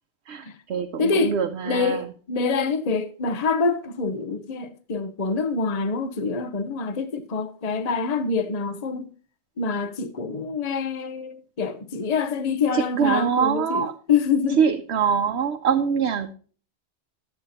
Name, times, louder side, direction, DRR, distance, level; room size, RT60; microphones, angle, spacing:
voice 1, 0.3-2.1 12.7-13.9 14.6-16.3, right 7 dB, 85° right, 1.0 m, -24 dB
voice 2, 1.0-1.3 1.6-9.1 9.6-14.6, left 4 dB, 40° left, 0.9 m, -26 dB
11.5 x 8.2 x 4.1 m
omnidirectional pair, 1.1 m